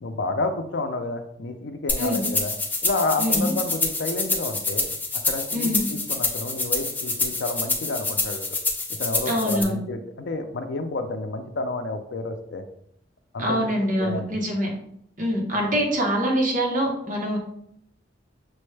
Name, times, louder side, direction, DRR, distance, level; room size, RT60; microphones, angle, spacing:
voice 1, 0.0-2.5 2.8-4.9 5.2-8.6 9.0-12.6 13.3-14.2, left 2 dB, 70° left, 7 dB, 0.5 m, -30 dB
sound 1, 1.9-9.6, left 3 dB, 10° left, 0.4 m, -27 dB
voice 2, 3.2-3.5 5.5-5.8 9.3-9.8 13.4-14.7 15.2-17.4, equal, 45° right, -1 dB, 1.0 m, -24 dB
6.1 x 2.1 x 3.2 m, 0.73 s
head